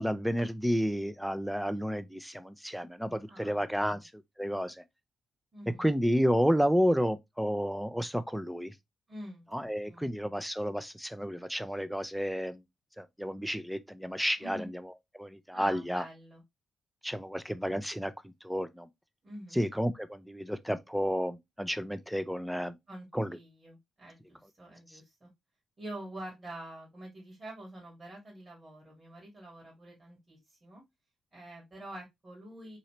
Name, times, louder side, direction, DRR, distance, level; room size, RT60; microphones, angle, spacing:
voice 1, 0.0-4.1 4.4-4.8 5.8-8.7 9.5-12.6 13.0-14.7 15.1-16.0 17.0-18.9 19.5-22.8 23.1-23.4, equal, ahead, 0.6 m, -31 dB
voice 2, 3.3-4.0 5.5-5.9 9.1-10.0 14.4-14.7 15.5-16.4 19.2-19.6 22.9-25.3 25.8-30.8 31.3-32.8, right 1 dB, 40° right, 2.4 m, -46 dB
4.0 x 2.7 x 3.2 m
hypercardioid pair, 45°, 0 cm